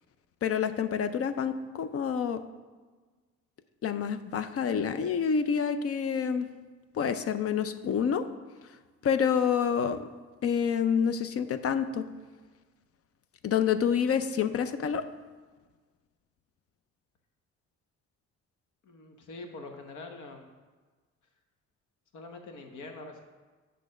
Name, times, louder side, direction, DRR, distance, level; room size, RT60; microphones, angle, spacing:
voice 1, 0.4-2.4 3.8-6.5 6.9-8.2 9.0-10.1 10.4-12.0 13.4-15.1, left 7 dB, 50° left, 10 dB, 0.5 m, -28 dB
voice 2, 18.8-20.5 22.1-23.2, left 3 dB, 75° left, 4 dB, 1.1 m, -44 dB
8.4 x 3.3 x 6.4 m, 1.4 s
cardioid pair, 90°, 30 cm